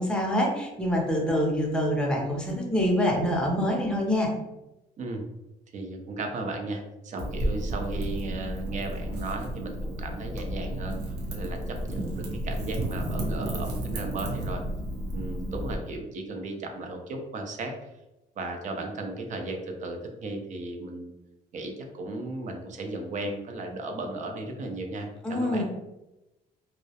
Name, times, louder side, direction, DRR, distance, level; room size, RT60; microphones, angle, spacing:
voice 1, 0.0-4.3 25.2-25.6, equal, 5° left, -1 dB, 0.6 m, -25 dB
voice 2, 5.7-11.0 11.3-14.6 15.1-17.7 18.4-21.1 21.5-25.6, right 2 dB, 45° right, 4 dB, 0.5 m, -35 dB
Wind / Fire, 7.2-15.8, right 1 dB, 90° right, 0.7 m, -32 dB
2.2 x 2.0 x 2.7 m, 0.94 s
cardioid pair, 110°, 17 cm